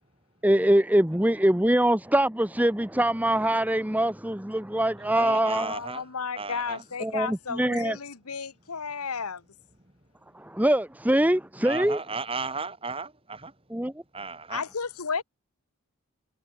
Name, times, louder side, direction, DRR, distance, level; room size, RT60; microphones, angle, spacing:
voice 1, 0.4-5.7 7.0-8.0 10.3-12.0 13.7-13.9, right 1 dB, 5° right, 1.0 m, -23 dB
voice 2, 5.0-6.1 6.3-6.9 11.6-13.5 14.1-14.6, right 4 dB, 25° right, 6.1 m, -35 dB
voice 3, 5.5-9.4 14.5-15.2, left 5 dB, 85° left, 1.4 m, -33 dB
head